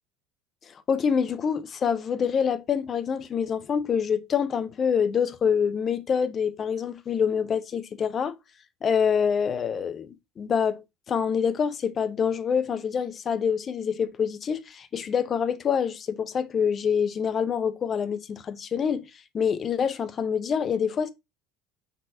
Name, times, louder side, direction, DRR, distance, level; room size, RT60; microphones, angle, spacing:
voice 1, 0.6-8.3 8.8-19.0 19.3-21.1, left 7 dB, 35° left, 0.5 m, -26 dB
3.9 x 3.6 x 2.5 m
figure-of-eight pair, 70°, 0 cm